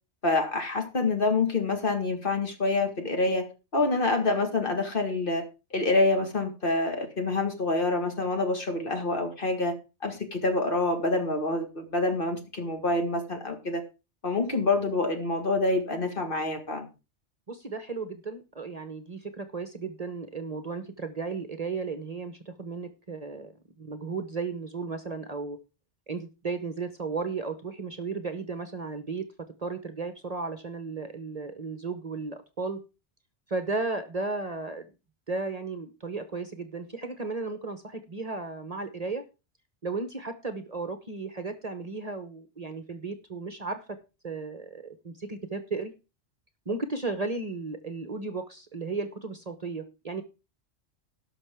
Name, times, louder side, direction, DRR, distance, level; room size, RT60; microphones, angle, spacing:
voice 1, 0.2-3.5 3.7-13.8 14.2-16.9, left 2 dB, 50° left, 4 dB, 2.0 m, -27 dB
voice 2, 17.5-23.5 23.8-25.6 26.1-29.3 29.6-32.8 33.5-34.9 35.3-39.2 39.8-44.0 44.2-45.9 46.7-50.2, right 3 dB, 35° right, 9 dB, 1.0 m, -34 dB
18.0 x 6.0 x 3.5 m, 0.30 s
omnidirectional pair, 1.2 m